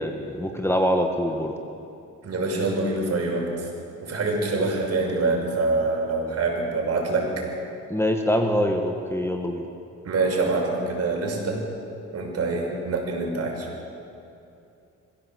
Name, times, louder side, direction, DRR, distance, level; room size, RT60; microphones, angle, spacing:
voice 1, 0.0-1.5 4.6-4.7 7.9-9.6, equal, 10° left, 4 dB, 1.7 m, -24 dB
voice 2, 2.2-3.7 4.0-7.4 10.0-11.6 12.1-13.7, right 3 dB, 55° right, 0 dB, 6.2 m, -25 dB
23.0 x 16.0 x 7.9 m, 2.7 s
cardioid pair, 90°, 30 cm